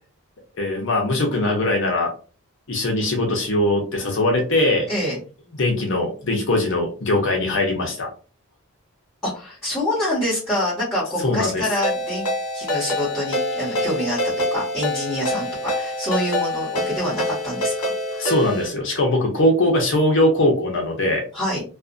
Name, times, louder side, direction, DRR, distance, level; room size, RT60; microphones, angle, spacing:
voice 1, 0.6-2.1 2.7-4.9 5.6-8.1 11.2-11.6 18.2-21.2, left 1 dB, 55° left, 0 dB, 0.7 m, -21 dB
voice 2, 4.9-5.2 9.2-14.2 14.5-18.3 21.3-21.6, left 1 dB, ahead, -10 dB, 1.3 m, -26 dB
Ringtone, 11.8-18.7, left 1 dB, 75° left, 1.0 m, -26 dB
2.5 x 2.4 x 2.5 m, 0.37 s
head